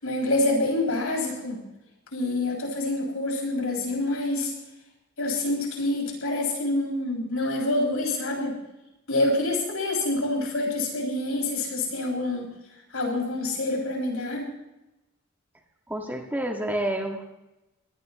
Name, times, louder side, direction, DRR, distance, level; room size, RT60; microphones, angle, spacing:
voice 1, 0.0-1.6 2.1-4.5 5.2-8.6 9.1-12.5 12.9-14.5, left 2 dB, 75° left, -1 dB, 6.6 m, -26 dB
voice 2, 15.9-17.2, right 1 dB, 10° right, 1 dB, 1.8 m, -29 dB
23.5 x 18.5 x 3.1 m, 0.94 s
head